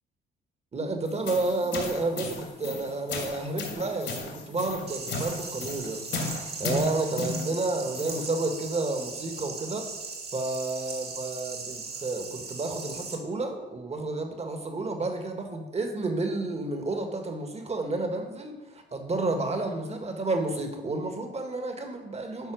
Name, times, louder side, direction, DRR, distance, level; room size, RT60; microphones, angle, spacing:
voice 1, 0.7-9.9 10.3-22.5, right 2 dB, 30° right, 4 dB, 1.6 m, -31 dB
sound 1, 1.1-8.3, left 3 dB, 65° left, 2.5 m, -35 dB
sound 2, 4.9-13.2, right 4 dB, 55° right, 2.1 m, -39 dB
11.0 x 4.3 x 6.4 m, 1.1 s
cardioid pair, 90°, 20 cm